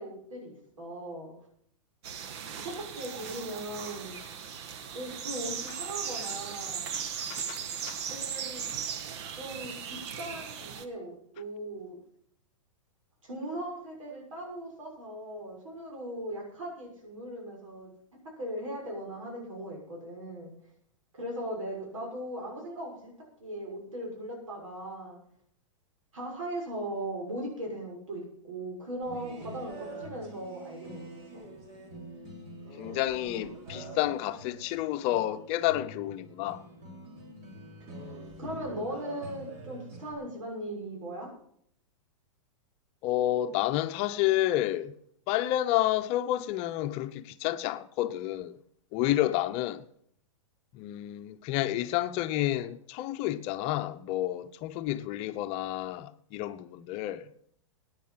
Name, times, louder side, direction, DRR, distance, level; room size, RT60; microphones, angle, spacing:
voice 1, 0.0-1.3 2.6-4.2 4.9-6.9 8.1-8.6 9.4-12.0 13.2-17.9 18.4-20.5 21.1-23.1 23.4-25.2 26.1-31.0 31.3-31.4 38.4-41.3, right 1 dB, 80° right, 6.6 m, -38 dB
sound 1, 2.0-10.8, right 7 dB, 55° right, 1.3 m, -37 dB
sound 2, 29.0-40.1, right 1 dB, 40° right, 3.7 m, -45 dB
voice 2, 32.8-36.6 43.0-44.9 45.3-48.5 48.9-49.8 50.7-57.2, left 14 dB, 40° left, 0.8 m, -30 dB
15.0 x 9.8 x 5.8 m
hypercardioid pair, 125°, 16 cm